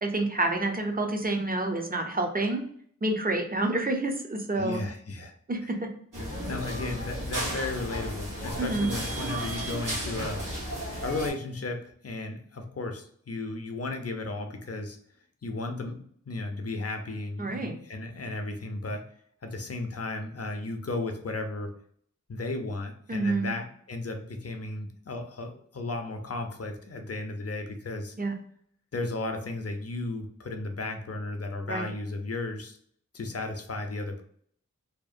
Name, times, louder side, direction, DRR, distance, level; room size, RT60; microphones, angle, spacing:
voice 1, 0.0-2.6 3.0-4.8 5.5-5.8 8.6-8.9 17.4-17.8 23.1-23.5 28.2-28.3 31.7-31.9, right 2 dB, 30° right, 4 dB, 0.5 m, -28 dB
voice 2, 4.6-5.3 6.5-10.4 11.0-15.0 15.4-19.0 19.4-21.7 22.3-28.1 28.9-32.8 33.1-34.2, left 2 dB, 50° left, 4 dB, 0.5 m, -34 dB
sound 1, 6.1-11.3, equal, 75° right, 1.3 m, -34 dB
2.8 x 2.0 x 2.4 m, 0.63 s
wide cardioid pair, 45°, 32 cm